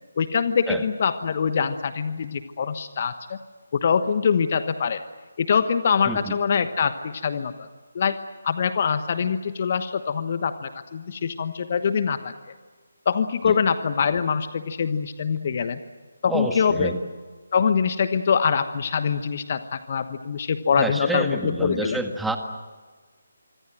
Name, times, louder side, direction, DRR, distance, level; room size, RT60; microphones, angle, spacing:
voice 1, 0.2-3.4 3.7-5.0 5.4-7.7 7.9-8.1 8.4-12.3 13.0-15.8 16.2-16.9 17.5-22.0, left 6 dB, 40° left, 11 dB, 1.2 m, -24 dB
voice 2, 6.0-6.3 13.4-13.6 16.3-17.0 20.8-22.4, right 2 dB, 5° right, 6 dB, 1.7 m, -28 dB
26.0 x 25.0 x 7.7 m, 1.4 s
figure-of-eight pair, 150°, 0 cm